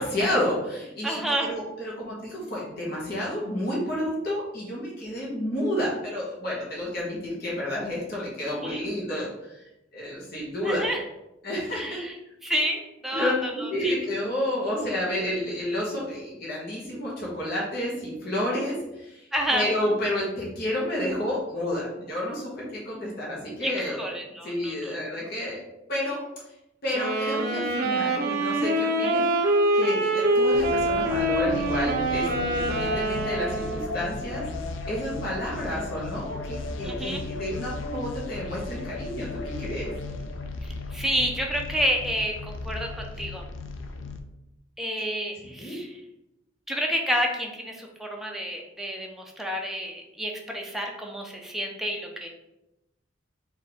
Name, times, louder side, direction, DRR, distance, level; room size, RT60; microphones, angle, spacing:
voice 1, 0.0-9.6 9.9-10.8 11.4-12.1 13.1-13.4 13.7-19.2 19.5-24.0 24.4-25.6 25.9-26.2 26.8-34.4 34.9-39.9 45.5-45.8, left 1 dB, 55° left, -6 dB, 1.2 m, -30 dB
voice 2, 1.0-1.5 8.4-8.8 10.6-11.0 11.8-12.1 12.4-13.9 19.3-19.7 23.6-24.9 29.0-29.1 36.8-37.2 40.6-43.4 44.8-45.9 46.7-52.3, equal, ahead, 0 dB, 0.5 m, -29 dB
Wind instrument woodwind instrument, 26.9-34.1, right 1 dB, 50° right, 0.5 m, -25 dB
sound 1, 30.5-44.2, left 3 dB, 75° left, 0.4 m, -35 dB
4.2 x 2.7 x 3.5 m, 0.91 s
head